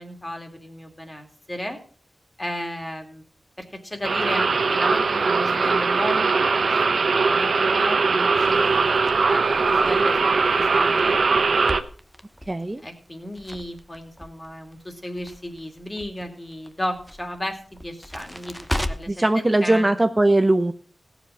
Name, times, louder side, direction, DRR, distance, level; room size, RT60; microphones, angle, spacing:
voice 1, 0.0-1.8 2.4-3.2 3.6-8.9 9.3-11.2 12.8-19.1 19.4-20.0, left 1 dB, 20° left, 4 dB, 2.7 m, -34 dB
sound 1, 4.0-11.8, right 4 dB, 75° right, 0.8 m, -20 dB
Crackle, 8.3-19.3, equal, ahead, 1.0 m, -37 dB
voice 2, 12.5-12.8 19.1-20.7, right 1 dB, 25° right, 9 dB, 0.7 m, -20 dB
16.5 x 7.1 x 5.5 m, 0.43 s
wide cardioid pair, 70°, 0 cm